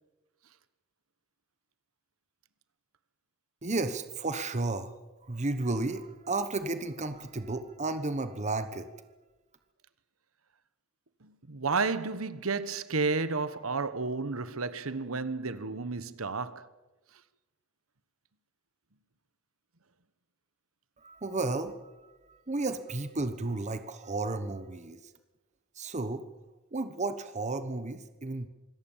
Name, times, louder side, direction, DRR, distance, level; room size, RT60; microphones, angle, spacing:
voice 1, 3.6-4.9 5.2-8.9 21.0-25.1 25.7-26.2 26.7-28.5, right 2 dB, 35° right, 1.1 m, -33 dB
voice 2, 11.2-16.6, right 4 dB, 75° right, 1.3 m, -32 dB
25.5 x 17.5 x 7.4 m
head